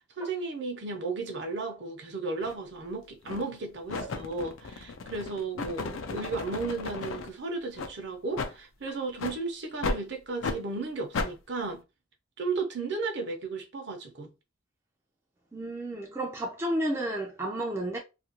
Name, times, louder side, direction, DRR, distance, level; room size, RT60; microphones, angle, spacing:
voice 1, 0.2-11.8 12.4-14.3, right 3 dB, 55° right, 0.7 m, -34 dB
sound 1, 2.4-2.6 3.2-3.6 3.9-7.3 7.8-7.9 8.3-8.5 9.2-9.4 9.8-10.0 10.4-10.6 11.1-11.3, left 3 dB, 80° left, 0.5 m, -34 dB
voice 2, 15.5-18.0, right 1 dB, 15° right, 0.4 m, -32 dB
2.7 x 2.4 x 2.9 m
head